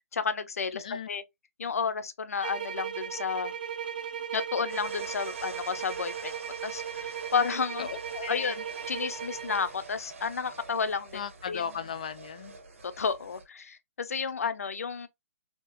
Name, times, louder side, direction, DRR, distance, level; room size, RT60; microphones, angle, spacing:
voice 1, 0.1-1.2 1.6-3.5 4.3-6.3 6.6-7.9 8.3-8.6 8.9-11.2 11.5-11.7 12.8-15.1, left 5 dB, 70° left, 0.7 m, -31 dB
voice 2, 0.7-1.1 7.8-8.6 11.1-12.6, left 7 dB, 30° left, 0.3 m, -37 dB
sound 1, 2.4-9.8, right 8 dB, 35° right, 0.4 m, -37 dB
sound 2, 4.7-13.4, right 4 dB, 60° right, 1.5 m, -47 dB
3.7 x 2.9 x 2.6 m
hypercardioid pair, 175°, 8 cm